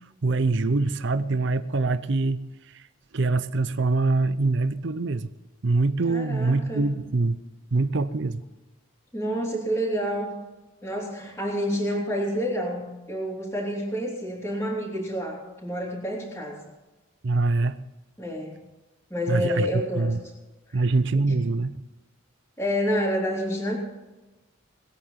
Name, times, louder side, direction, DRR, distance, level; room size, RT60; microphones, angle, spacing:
voice 1, 0.2-2.5 2.7-2.8 3.1-5.3 5.6-7.4 7.7-8.4 17.2-17.8 19.3-19.7 20.0-20.2 20.7-21.8, right 3 dB, 55° right, 13 dB, 0.6 m, -24 dB
voice 2, 6.1-6.8 9.1-10.4 10.8-16.6 18.2-18.5 19.1-20.1 20.7-20.9 22.6-23.8, equal, 10° left, -6 dB, 3.2 m, -28 dB
20.5 x 8.7 x 5.8 m, 1.1 s
head